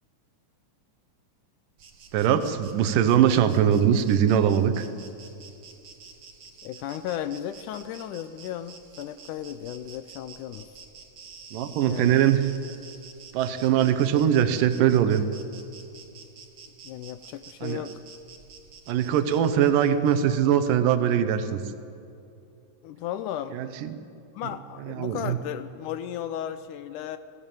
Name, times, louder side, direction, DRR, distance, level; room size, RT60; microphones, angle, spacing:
Insect, 1.8-21.0, right 5 dB, 50° right, 2.2 m, -49 dB
voice 1, 2.1-4.9 11.5-12.5 13.3-15.2 17.6-17.8 18.9-21.6 23.5-24.0 24.8-25.4, right 9 dB, 80° right, 10 dB, 2.6 m, -22 dB
voice 2, 6.6-10.7 11.9-12.2 16.8-17.9 22.8-23.6 24.4-27.2, left 10 dB, 80° left, 11 dB, 2.0 m, -35 dB
21.0 x 16.5 x 9.0 m, 2.7 s
omnidirectional pair, 3.9 m